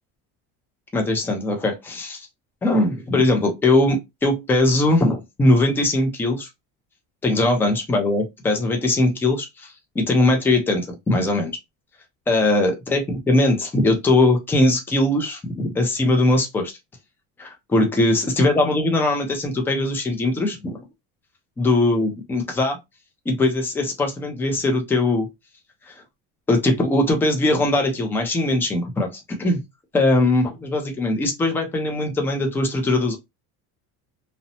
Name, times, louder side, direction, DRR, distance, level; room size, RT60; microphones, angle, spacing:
voice 1, 0.9-2.3 2.6-6.5 7.2-9.7 10.0-11.5 12.3-16.7 17.4-20.8 21.6-22.8 23.3-25.3 25.9-26.0 26.5-29.6 29.9-33.2, left 2 dB, 5° left, 0.3 m, -20 dB
2.7 x 2.0 x 2.7 m
cardioid pair, 165°, 33 cm